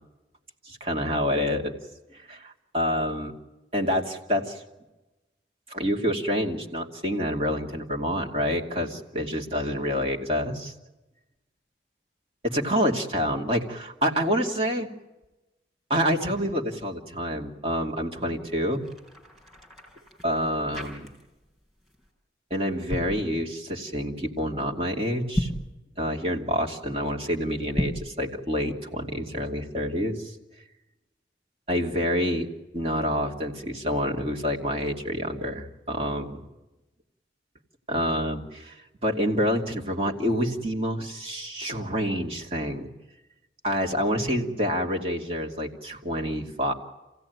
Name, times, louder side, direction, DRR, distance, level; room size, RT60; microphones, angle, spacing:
voice 1, 0.6-1.8 2.1-3.3 3.7-4.6 5.7-10.7 12.4-14.9 15.9-18.8 20.2-21.1 22.5-25.5 26.0-30.3 31.7-32.5 32.7-36.4 37.9-38.7 39.0-42.9 43.6-46.7, equal, 35° right, 1 dB, 2.7 m, -27 dB
sound 1, 18.6-21.5 21.8-22.1 22.7-23.2 25.2-25.7 27.6-28.1, equal, ahead, 5.0 m, -33 dB
27.0 x 17.0 x 9.5 m, 1.1 s
head